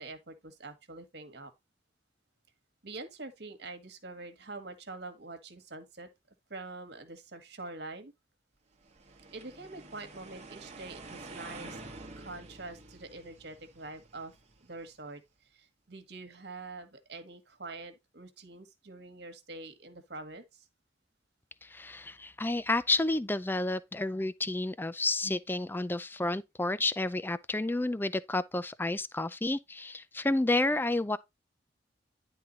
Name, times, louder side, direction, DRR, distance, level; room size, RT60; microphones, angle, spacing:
voice 1, 0.0-1.5 2.8-6.1 6.5-8.1 9.3-11.8 12.2-14.3 14.6-20.7, right 3 dB, 65° right, 1.5 m, -45 dB
sound 1, 8.9-15.0, right 2 dB, 40° right, 1.3 m, -48 dB
voice 2, 21.6-31.2, left 2 dB, 10° left, 0.4 m, -30 dB
10.5 x 3.9 x 4.0 m
head